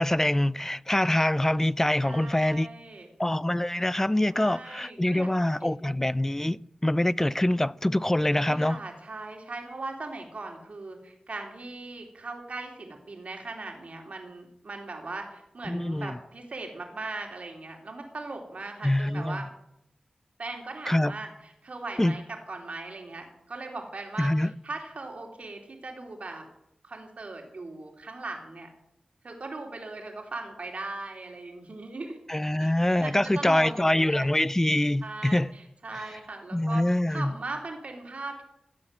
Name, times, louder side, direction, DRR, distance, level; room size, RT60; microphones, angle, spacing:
voice 1, 0.0-2.7 3.2-8.8 15.7-16.2 18.8-19.5 20.9-21.1 22.0-22.2 24.2-24.5 32.3-35.5 35.9-36.0 36.5-37.3, left 1 dB, 15° left, 0.5 m, -25 dB
voice 2, 2.0-3.1 4.3-5.3 8.3-19.5 20.4-26.4 26.8-28.7 29.2-32.2 32.6-32.7 33.0-34.3 35.0-38.4, right 3 dB, 70° right, 3.3 m, -39 dB
17.0 x 7.7 x 7.7 m
cardioid pair, 40°, 2 cm